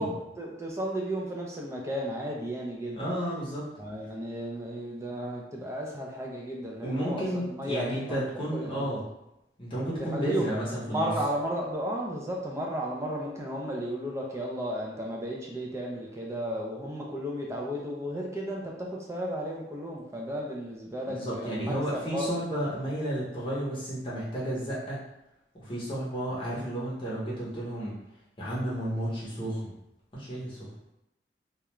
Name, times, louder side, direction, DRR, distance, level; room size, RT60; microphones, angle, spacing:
voice 1, 0.0-3.0 3.8-7.2 7.5-8.7 10.1-10.5 10.8-22.3, equal, 15° right, -2 dB, 0.4 m, -34 dB
voice 2, 3.0-3.7 6.8-9.0 9.6-11.1 21.1-25.0 25.6-28.0 28.4-29.7 30.1-30.7, right 1 dB, 30° left, -7 dB, 0.8 m, -32 dB
2.4 x 2.2 x 3.0 m, 0.88 s
head